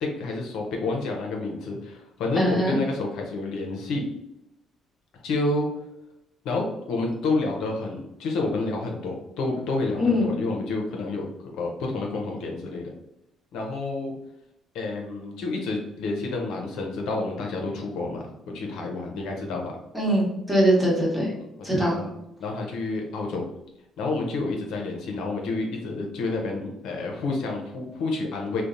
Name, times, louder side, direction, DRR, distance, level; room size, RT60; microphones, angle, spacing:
voice 1, 0.0-4.0 5.2-5.7 6.4-11.2 11.5-12.9 13.5-14.1 14.7-19.7 21.6-23.4 24.0-28.6, left 3 dB, 80° left, 0 dB, 0.5 m, -29 dB
voice 2, 2.4-2.8 10.0-10.3 19.9-21.3 21.6-22.0, equal, 5° right, -5 dB, 1.1 m, -22 dB
2.8 x 2.0 x 2.5 m, 0.85 s
cardioid pair, 90°, 0 cm